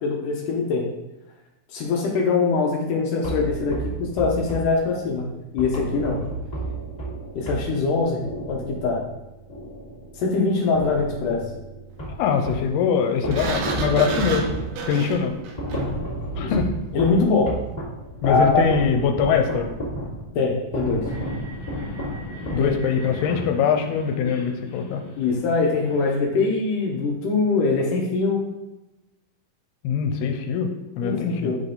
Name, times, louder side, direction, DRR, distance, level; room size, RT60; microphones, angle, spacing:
voice 1, 0.0-0.9 1.7-5.3 5.5-6.2 7.4-8.2 8.5-9.0 10.2-11.4 16.4-16.5 16.9-17.5 18.2-18.6 20.4-21.0 22.6-22.8 25.2-28.4 31.0-31.6, left 4 dB, 70° left, -1 dB, 2.1 m, -22 dB
sound 1, 3.2-10.4 10.7-12.8 13.2-23.1, right 1 dB, 15° left, 1.3 m, -32 dB
voice 2, 12.2-14.5 14.9-15.3 16.4-16.7 18.2-19.7 22.5-25.0 29.8-30.7 31.0-31.5, left 6 dB, 90° left, 5 dB, 2.7 m, -22 dB
Sliding door, 13.3-16.1, right 4 dB, 80° right, 2.5 m, -30 dB
sound 2, 21.1-26.2, left 1 dB, 45° left, 1.6 m, -38 dB
9.7 x 3.9 x 3.8 m, 0.99 s
omnidirectional pair, 4.5 m